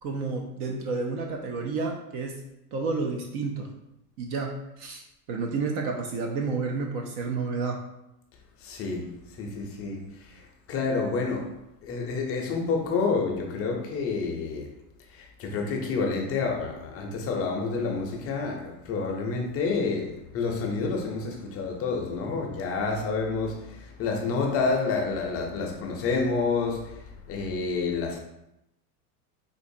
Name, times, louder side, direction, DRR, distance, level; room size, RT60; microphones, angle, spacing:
voice 1, 0.0-2.4 2.7-3.7 4.2-5.0 5.3-7.8, right 4 dB, 40° right, 2 dB, 0.4 m, -30 dB
voice 2, 8.6-11.5 11.8-14.7 15.1-28.2, left 4 dB, 30° left, 1 dB, 0.5 m, -29 dB
3.9 x 2.5 x 2.6 m, 0.86 s
hypercardioid pair, 115°, 48 cm